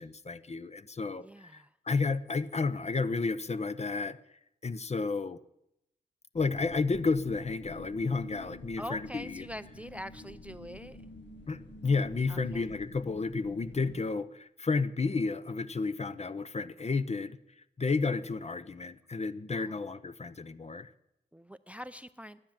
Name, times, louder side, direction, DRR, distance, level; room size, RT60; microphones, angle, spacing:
voice 1, 0.0-4.2 4.6-5.4 6.3-9.4 11.5-17.4 17.8-20.9, left 4 dB, 35° left, 14 dB, 0.7 m, -32 dB
voice 2, 1.2-1.8 8.8-11.1 12.3-12.7 19.5-19.8 21.3-22.4, equal, 5° right, 15 dB, 0.4 m, -44 dB
sound 1, 6.3-14.0, left 1 dB, 75° left, 1.7 m, -49 dB
12.0 x 9.8 x 7.3 m, 0.83 s
cardioid pair, 50°, 19 cm